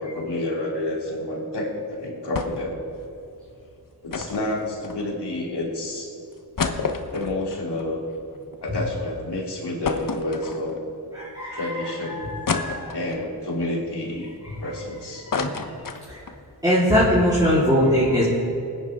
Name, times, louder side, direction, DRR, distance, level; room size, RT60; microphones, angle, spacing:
voice 1, 0.0-2.7 4.0-6.1 7.1-8.0 8.6-10.8 11.5-12.3 12.9-14.3 14.6-15.5, left 1 dB, 75° left, -2 dB, 3.1 m, -29 dB
sound 1, 2.3-2.8 3.1-3.2 4.1-5.4 5.9-6.0 6.3-8.8 9.2-9.3 9.8-11.0 11.5-11.6 12.5-13.3 13.9-14.8 15.1-16.4 16.8-16.9 17.1-17.4, left 4 dB, 50° left, 1.2 m, -30 dB
voice 2, 11.2-11.6 12.1-12.9 16.6-18.2, equal, 10° right, -10 dB, 3.9 m, -20 dB
23.0 x 10.0 x 3.7 m, 2.7 s
cardioid pair, 60°, 41 cm